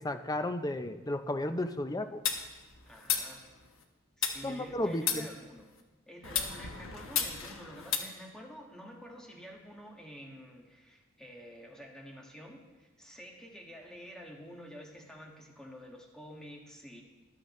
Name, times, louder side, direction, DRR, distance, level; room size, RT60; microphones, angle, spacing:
voice 1, 0.0-2.2 4.4-5.3, left 1 dB, 20° left, 9 dB, 0.6 m, -33 dB
sound 1, 2.2-3.8 4.2-5.8 6.2-8.0, left 7 dB, 85° left, 1.1 m, -34 dB
voice 2, 2.8-3.4 4.2-5.7 6.1-17.0, equal, 5° left, -1 dB, 1.7 m, -49 dB
14.5 x 11.5 x 3.2 m, 1.2 s
head